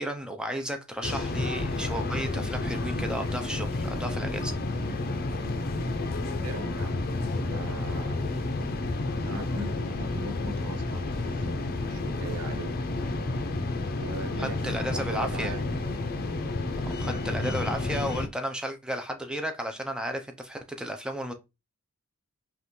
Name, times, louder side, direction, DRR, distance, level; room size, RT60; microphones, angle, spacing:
voice 1, 0.0-4.5 14.4-15.5 16.8-21.3, equal, 5° right, 0.5 m, -33 dB
sound 1, 1.0-18.3, left 2 dB, 45° left, 0.6 m, -30 dB
voice 2, 6.4-7.0 7.3-8.5 9.3-12.7 13.9-15.7, right 3 dB, 85° right, 0.6 m, -41 dB
5.5 x 2.5 x 3.0 m
head